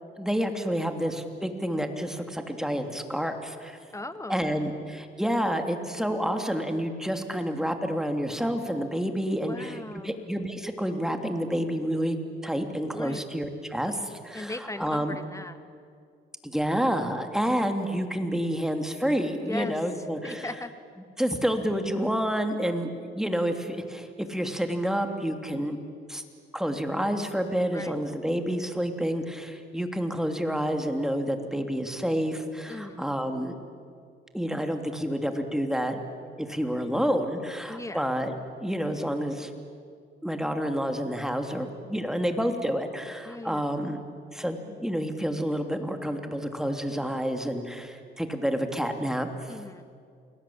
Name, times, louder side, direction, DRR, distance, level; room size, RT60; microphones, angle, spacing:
voice 1, 0.2-3.8 4.3-9.8 10.0-12.2 12.4-15.2 16.4-20.4 21.2-25.8 26.1-26.2 26.5-33.6 34.3-36.0 36.4-38.3 38.6-39.5 40.2-44.0 44.3-49.5, equal, ahead, 6 dB, 2.9 m, -29 dB
voice 2, 3.9-4.5 9.4-10.2 12.9-13.2 14.3-15.6 19.4-19.8 20.2-20.7 27.7-28.0 32.7-33.0 37.7-38.0 43.3-43.7 49.5-50.0, left 2 dB, 15° left, 10 dB, 1.8 m, -38 dB
29.0 x 21.0 x 8.7 m, 2.3 s
cardioid pair, 90°, 20 cm